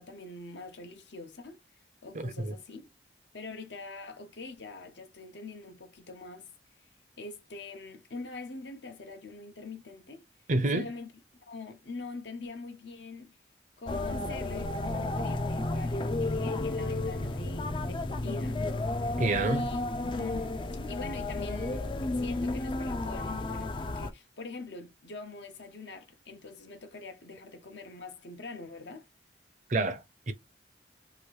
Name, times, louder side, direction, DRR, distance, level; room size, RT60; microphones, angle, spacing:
voice 1, 0.0-1.6 2.0-2.9 3.3-6.5 7.2-10.2 10.7-11.1 11.5-13.4 13.8-19.1 19.4-20.5 20.9-21.9 22.1-29.1, left 3 dB, 75° left, 0.9 m, -44 dB
voice 2, 2.1-2.5 10.5-10.9 19.2-19.7 29.7-30.3, right 2 dB, 45° right, 0.5 m, -28 dB
sound 1, 13.9-24.1, left 2 dB, 25° left, 0.3 m, -32 dB
3.0 x 2.5 x 3.1 m
head